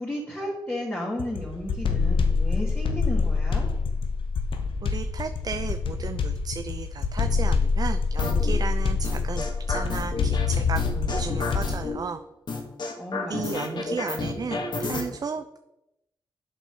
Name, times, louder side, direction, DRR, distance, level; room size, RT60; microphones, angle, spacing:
voice 1, 0.0-3.7 13.0-14.0, equal, 20° left, -6 dB, 3.0 m, -34 dB
sound 1, 1.2-11.9, left 5 dB, 80° left, 1.1 m, -26 dB
voice 2, 4.8-12.2 13.3-15.6, right 5 dB, 45° right, 8 dB, 0.5 m, -34 dB
sound 2, 8.2-8.5 9.0-10.5 10.7-12.0 12.5-15.0, left 3 dB, 60° left, 2.1 m, -30 dB
8.1 x 6.1 x 6.4 m, 0.91 s
cardioid pair, 65°, 9 cm